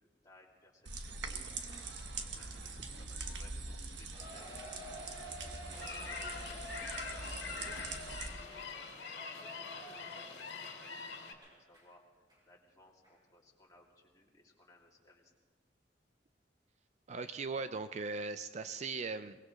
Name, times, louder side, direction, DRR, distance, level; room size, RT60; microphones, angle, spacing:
voice 1, 0.0-5.8 6.2-8.0 8.3-15.3, left 1 dB, 20° left, -2 dB, 2.6 m, -63 dB
sound 1, 0.9-8.3, right 3 dB, 85° right, 1.3 m, -43 dB
Cheering, 4.1-11.9 12.3-12.4 13.0-13.1, left 1 dB, 25° right, 4.9 m, -51 dB
sound 2, 5.7-11.3, left 5 dB, 70° left, 2.0 m, -44 dB
voice 2, 17.1-19.4, right 4 dB, 40° right, 11 dB, 0.4 m, -39 dB
23.0 x 20.0 x 3.2 m, 1.5 s
head